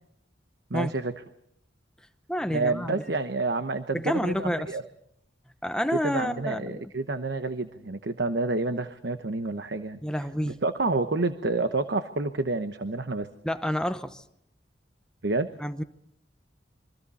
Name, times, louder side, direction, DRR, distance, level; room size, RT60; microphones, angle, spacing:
voice 1, 0.7-1.1 2.5-4.8 6.0-10.0 10.4-13.3 15.2-15.5, right 3 dB, 70° right, 9 dB, 1.0 m, -29 dB
voice 2, 2.3-3.0 3.9-4.7 5.6-6.8 10.0-10.6 13.4-14.2 15.6-15.8, equal, 5° left, 8 dB, 1.0 m, -29 dB
27.5 x 24.0 x 4.2 m, 0.72 s
head